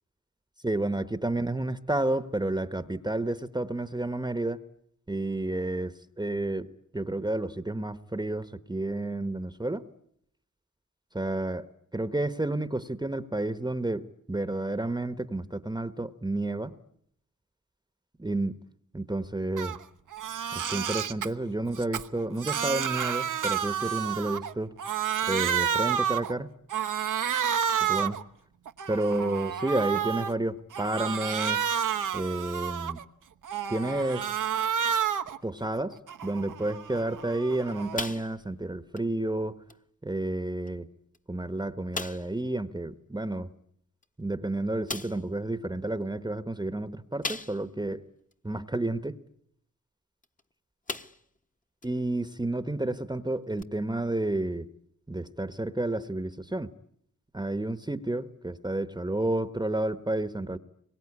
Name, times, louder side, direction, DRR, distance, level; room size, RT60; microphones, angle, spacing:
voice 1, 0.6-4.6 5.1-6.7 6.9-9.8 11.1-11.7 11.9-16.7 18.2-18.5 18.9-19.8 20.5-24.7 25.3-26.5 27.8-28.2 28.9-31.7 32.1-33.0 33.7-34.3 35.4-39.6 40.0-40.9 41.3-43.5 44.2-48.0 48.4-49.1 51.8-54.7 55.1-56.7 57.3-60.6, right 2 dB, 15° right, 12 dB, 1.1 m, -30 dB
Crying sobbing, 19.6-19.8 20.1-21.3 21.7-24.5 24.8-26.3 26.7-28.2 28.7-30.3 30.7-33.0 33.4-35.4 35.8-38.1, right 8 dB, 90° right, 1.2 m, -30 dB
sound 1, 37.9-38.6 38.9-39.1 39.7-39.8 40.6-40.7 41.1-41.2 41.9-42.4 44.0-44.1 44.9-45.3 47.2-47.8 48.3-48.4 50.2-50.4 50.9-51.4 51.8-51.9 53.6-53.7, left 3 dB, 25° left, 1.2 m, -37 dB
25.5 x 23.0 x 9.8 m, 0.71 s
wide cardioid pair, 85°, 31 cm